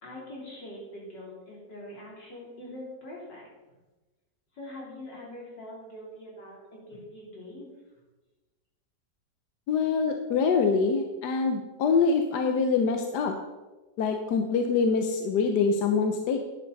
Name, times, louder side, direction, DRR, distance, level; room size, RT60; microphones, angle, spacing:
voice 1, 0.0-3.5 4.5-7.7, left 1 dB, 90° left, -4 dB, 4.2 m, -43 dB
voice 2, 9.7-13.3 14.0-16.4, left 5 dB, 75° left, 5 dB, 1.4 m, -25 dB
10.5 x 10.5 x 4.0 m, 1.1 s
omnidirectional pair, 1.9 m